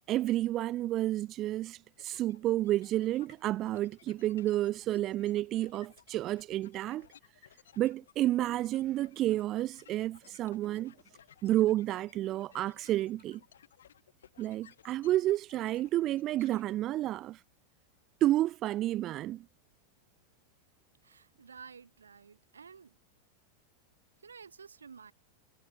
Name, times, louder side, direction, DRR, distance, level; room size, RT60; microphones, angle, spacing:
voice 1, 0.1-7.1 7.8-10.9 11.4-13.4 14.4-17.4 18.2-19.4, right 14 dB, 35° right, 0.3 m, -30 dB
sound 1, 2.0-16.6, left 9 dB, 65° left, 6.2 m, -60 dB
voice 2, 21.0-22.9 24.2-25.1, right 6 dB, 70° right, 2.4 m, -52 dB
figure-of-eight pair, 90°, 0 cm